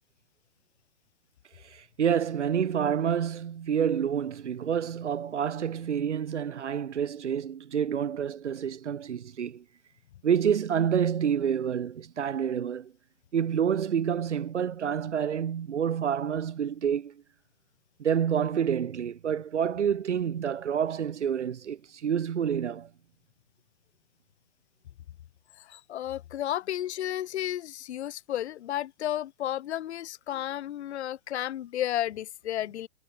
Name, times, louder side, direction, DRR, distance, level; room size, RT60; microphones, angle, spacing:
voice 1, 1.7-9.6 10.2-12.9 13.3-17.2 18.0-22.9, right 8 dB, 90° right, 1.7 m, -28 dB
voice 2, 25.6-32.9, left 12 dB, 70° left, 0.7 m, -32 dB
hypercardioid pair, 155°, 34 cm